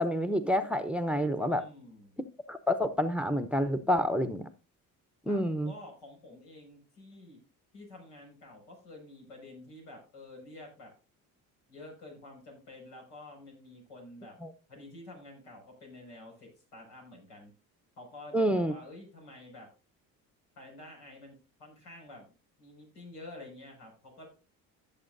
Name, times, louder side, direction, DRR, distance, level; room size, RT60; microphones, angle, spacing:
voice 1, 0.0-1.6 2.5-4.5 5.3-5.7 14.4-14.5 18.3-18.7, equal, 5° right, 0.8 m, -28 dB
voice 2, 1.5-2.2 5.3-7.4 7.7-10.9 11.7-14.4 14.7-17.5 18.0-19.7 20.6-22.3 22.6-24.3, left 2 dB, 85° left, 5.8 m, -49 dB
16.0 x 7.1 x 2.6 m
supercardioid pair, 70°, 44 cm